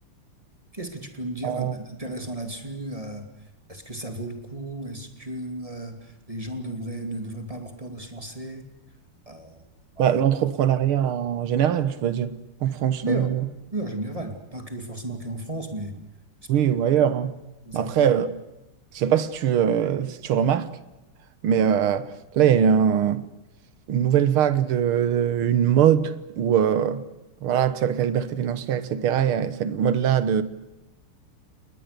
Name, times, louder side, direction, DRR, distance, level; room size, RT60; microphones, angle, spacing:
voice 1, 0.7-8.7 9.3-9.7 10.0-10.1 13.0-13.4 13.7-16.0 17.6-18.0, right 1 dB, 15° right, 2.4 m, -34 dB
voice 2, 1.4-1.8 10.0-12.3 12.6-13.4 16.5-17.3 17.7-18.3 18.9-20.7 21.4-23.2 23.9-27.0 27.4-30.4, right 9 dB, 80° right, 2.0 m, -22 dB
29.5 x 21.0 x 6.7 m
omnidirectional pair, 2.3 m